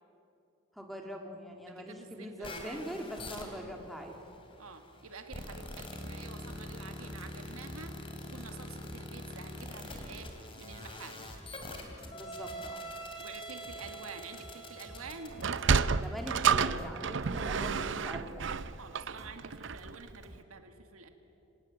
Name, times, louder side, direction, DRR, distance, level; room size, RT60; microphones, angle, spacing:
voice 1, 0.7-4.2 12.1-12.9 16.0-18.4, equal, ahead, 2 dB, 2.3 m, -42 dB
voice 2, 1.7-2.8 4.6-11.3 13.2-15.4 18.8-21.1, right 4 dB, 80° right, 7 dB, 1.9 m, -48 dB
sound 1, 2.4-16.0, equal, 25° left, 2.8 m, -44 dB
sound 2, 6.0-20.4, equal, 15° right, 1.7 m, -52 dB
Sliding door, 15.3-19.9, right 5 dB, 55° right, 0.6 m, -30 dB
25.5 x 18.0 x 8.8 m, 2.7 s
head